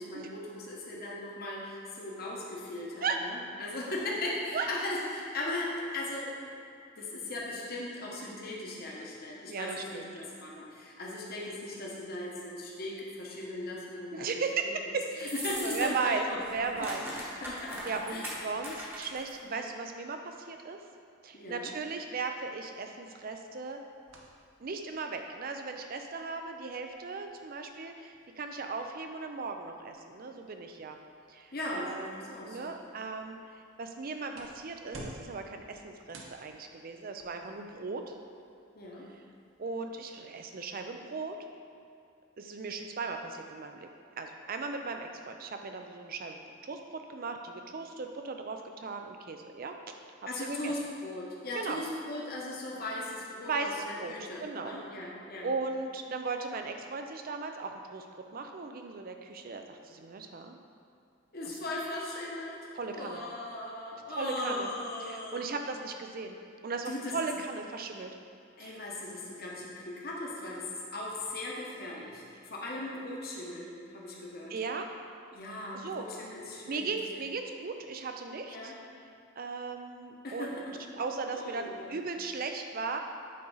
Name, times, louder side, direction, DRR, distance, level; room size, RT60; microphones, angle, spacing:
voice 1, 0.0-6.3 7.0-14.4 15.2-17.8 18.1-18.3 19.4-19.7 21.3-21.7 31.5-32.8 38.7-39.1 50.3-55.5 61.3-62.6 62.9-65.6 66.9-67.3 68.6-74.5 75.3-76.9 78.5-78.7 80.2-80.7 81.3-81.9, left 1 dB, 50° left, -3 dB, 1.1 m, -38 dB
voice 2, 9.5-10.1 14.1-15.3 15.6-16.2 16.5-17.1 17.8-20.8 21.2-23.8 24.6-31.0 31.3-38.1 39.6-41.4 42.4-43.9 44.2-49.7 50.4-50.7 51.6-51.8 53.4-54.1 54.4-54.7 55.4-58.1 58.3-60.6 61.5-61.6 62.8-63.2 64.1-64.7 65.0-66.4 66.6-68.2 68.6-68.8 74.5-74.9 75.7-76.1 76.7-78.7 79.4-80.7 81.0-83.0, right 4 dB, 45° right, 5 dB, 0.5 m, -37 dB
sound 1, 15.2-16.1 16.4-19.3, equal, 10° right, 1.0 m, -40 dB
sound 2, 23.0-40.4, right 1 dB, 80° right, 0.8 m, -55 dB
8.5 x 3.9 x 3.9 m, 2.5 s
head